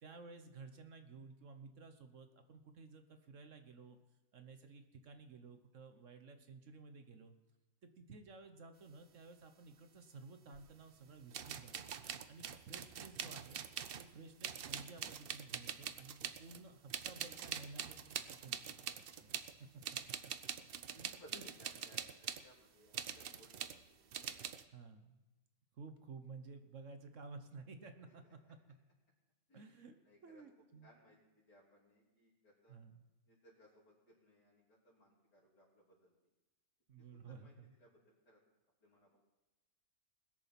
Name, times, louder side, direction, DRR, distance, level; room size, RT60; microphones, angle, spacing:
voice 1, 0.0-4.0 4.3-7.4 7.8-11.7 12.3-13.6 14.0-19.3 21.0-21.5 24.7-25.2 25.7-28.6 29.5-30.0 30.2-30.9 32.7-33.1 36.9-37.7, right 4 dB, 50° right, 7 dB, 1.2 m, -54 dB
sound 1, 10.5-10.6 11.3-14.1 14.4-16.6 16.9-19.5 19.8-22.4 22.9-23.8 24.1-24.6, right 8 dB, 80° right, 0.5 m, -44 dB
voice 2, 21.2-24.5 28.1-28.2 29.5-29.7 30.1-30.4 30.8-32.8 33.3-36.1 37.1-37.5 37.8-37.9 38.3-38.4 38.8-39.2, left 1 dB, 75° left, -7 dB, 3.9 m, -64 dB
20.5 x 6.9 x 5.9 m, 1.1 s
omnidirectional pair, 1.8 m